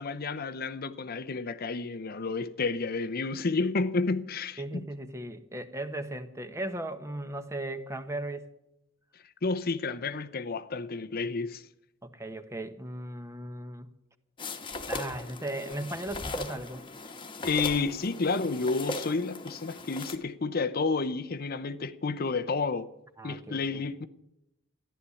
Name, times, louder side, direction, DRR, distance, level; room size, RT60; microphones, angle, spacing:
voice 1, 0.0-4.8 9.4-11.6 17.4-22.9 23.2-24.1, left 4 dB, 45° left, 0.7 m, -30 dB
voice 2, 4.6-8.5 12.0-13.9 14.9-16.8 23.2-23.8, right 1 dB, 15° right, 1.0 m, -37 dB
sound 1, 14.4-20.2, left 2 dB, 25° left, 1.3 m, -38 dB
14.5 x 11.5 x 8.3 m
head